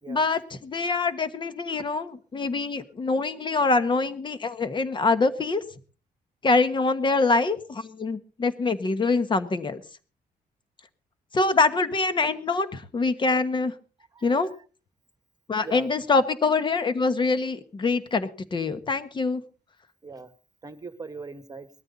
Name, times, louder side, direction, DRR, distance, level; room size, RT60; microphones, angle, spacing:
voice 1, 0.1-5.6 6.4-9.8 11.3-13.7 14.2-14.5 15.5-19.4, left 3 dB, 30° left, 12 dB, 1.3 m, -24 dB
voice 2, 20.6-21.7, right 4 dB, 25° right, 10 dB, 1.6 m, -40 dB
19.5 x 13.5 x 4.1 m, 0.38 s
cardioid pair, 145°, 16 cm